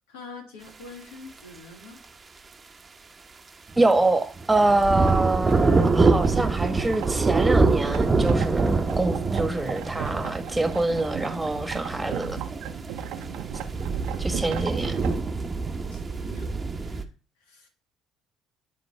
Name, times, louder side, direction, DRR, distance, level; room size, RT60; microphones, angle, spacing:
voice 1, 0.1-2.0 14.4-14.9 15.9-17.1 17.4-17.7, left 3 dB, 85° left, 1.9 m, -45 dB
sound 1, 3.7-4.0 4.4-17.0, right 3 dB, 30° right, 1.0 m, -25 dB
voice 2, 3.8-12.4 14.2-15.0, right 2 dB, 15° right, 1.4 m, -25 dB
sound 2, 4.5-15.2, right 9 dB, 75° right, 0.8 m, -37 dB
11.5 x 3.9 x 3.4 m
hypercardioid pair, 60°, 0 cm